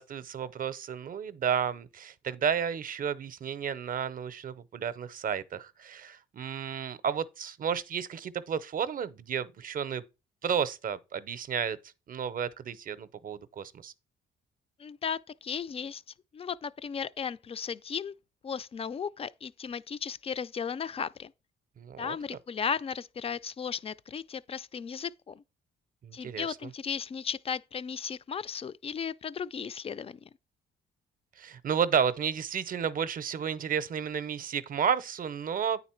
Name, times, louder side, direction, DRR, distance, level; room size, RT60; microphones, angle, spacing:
voice 1, 0.0-10.0 10.4-11.8 12.1-13.9 21.8-22.2 26.0-26.7 31.4-35.8, right 7 dB, 45° right, 0.6 m, -32 dB
voice 2, 14.8-16.0 16.3-18.1 18.4-21.3 22.0-25.4 26.1-30.3, left 6 dB, 30° left, 0.3 m, -35 dB
9.1 x 4.0 x 4.4 m
cardioid pair, 90°, 20 cm